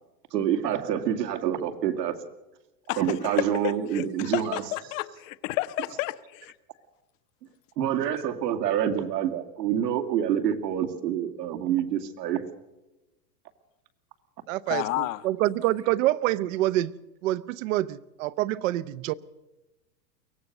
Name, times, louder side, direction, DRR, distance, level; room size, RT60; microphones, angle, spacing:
voice 1, 0.3-2.2 3.0-4.6 7.8-12.4, right 10 dB, 80° right, 2.5 m, -27 dB
voice 2, 3.6-6.5 14.7-15.2, left 17 dB, 50° left, 1.0 m, -31 dB
voice 3, 14.5-16.9 17.2-19.1, right 15 dB, 50° right, 0.9 m, -26 dB
23.5 x 17.5 x 6.6 m
supercardioid pair, 140°, 49 cm